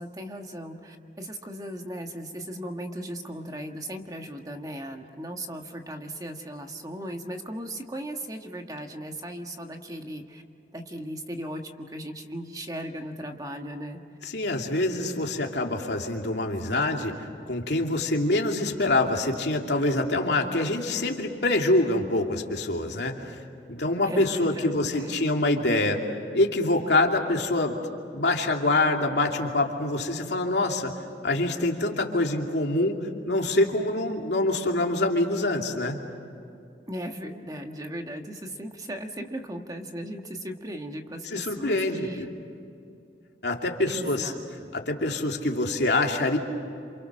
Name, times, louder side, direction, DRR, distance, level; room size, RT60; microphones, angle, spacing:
voice 1, 0.0-10.4 10.7-14.0 24.0-25.3 36.9-42.3 43.9-44.7, equal, 20° right, 4 dB, 1.6 m, -37 dB
voice 2, 14.2-17.1 17.5-23.4 23.7-26.0 26.3-27.8 28.1-30.9 31.2-36.0 41.3-42.3 43.4-44.3 44.7-46.4, left 2 dB, 75° left, 2 dB, 2.7 m, -25 dB
28.5 x 27.5 x 6.4 m, 2.5 s
head